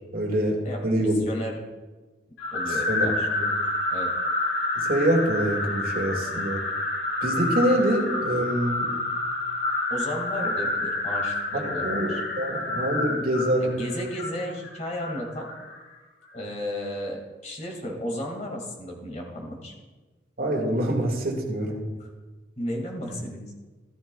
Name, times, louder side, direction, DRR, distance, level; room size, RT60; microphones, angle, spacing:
voice 1, 0.1-0.6 0.8-1.2 2.9-3.1 3.4-3.5 4.8-6.6 7.2-8.9 11.6-12.1 12.4-13.7 20.4-21.8, right 1 dB, 55° right, -1 dB, 2.0 m, -25 dB
voice 2, 0.6-1.6 2.5-3.3 3.9-4.1 9.9-12.2 13.6-15.5 16.3-19.7 22.0-22.1 22.6-23.5, equal, 40° left, 0 dB, 2.1 m, -34 dB
sound 1, 2.4-15.8, left 2 dB, 90° left, 2.8 m, -29 dB
14.0 x 13.5 x 2.3 m, 1.3 s
head